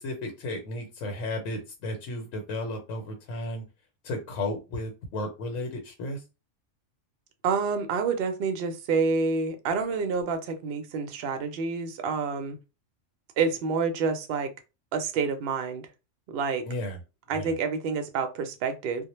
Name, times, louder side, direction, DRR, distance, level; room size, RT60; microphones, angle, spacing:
voice 1, 0.0-3.6 4.0-6.2 16.6-17.0 17.3-17.5, left 1 dB, 85° left, 1.0 m, -34 dB
voice 2, 7.4-12.6 13.4-14.5 14.9-15.9 16.3-16.7 17.3-19.1, right 5 dB, 60° right, 0.6 m, -28 dB
2.1 x 2.1 x 3.0 m
omnidirectional pair, 1.3 m